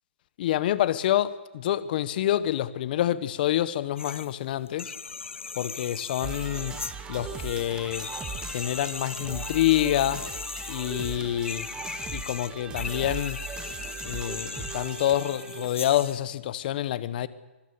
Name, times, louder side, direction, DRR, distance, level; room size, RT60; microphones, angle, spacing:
voice 1, 0.4-4.9 5.6-6.7 7.1-8.1 8.5-10.2 10.7-11.7 12.1-13.4 14.0-17.3, left 12 dB, 45° left, 1.2 m, -27 dB
sound 1, 4.0-4.3 4.7-16.2, left 5 dB, 90° left, 1.3 m, -38 dB
sound 2, 6.2-15.7, right 5 dB, 15° right, 2.0 m, -39 dB
24.5 x 20.5 x 7.0 m
hypercardioid pair, 140°, 7 cm